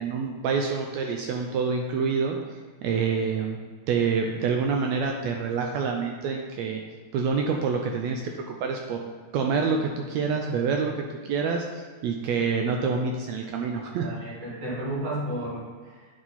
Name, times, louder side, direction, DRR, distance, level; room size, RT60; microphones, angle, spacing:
voice 1, 0.0-2.4 2.8-3.6 3.9-6.8 7.1-9.0 9.3-14.1, right 5 dB, 85° right, 2 dB, 1.5 m, -27 dB
voice 2, 14.0-16.1, right 1 dB, 55° right, -8 dB, 3.3 m, -33 dB
9.1 x 4.9 x 4.2 m, 1.5 s
omnidirectional pair, 3.7 m